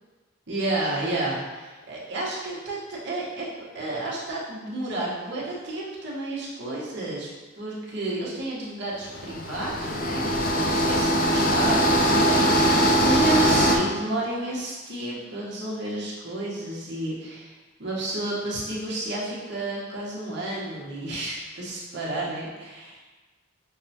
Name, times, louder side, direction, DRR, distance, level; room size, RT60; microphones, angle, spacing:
voice 1, 0.5-7.3 7.6-17.5 17.8-23.0, right 2 dB, 55° right, -6 dB, 0.9 m, -31 dB
sound 1, 9.1-13.8, equal, 45° left, 0.3 m, -21 dB
5.7 x 2.1 x 2.7 m, 1.2 s
head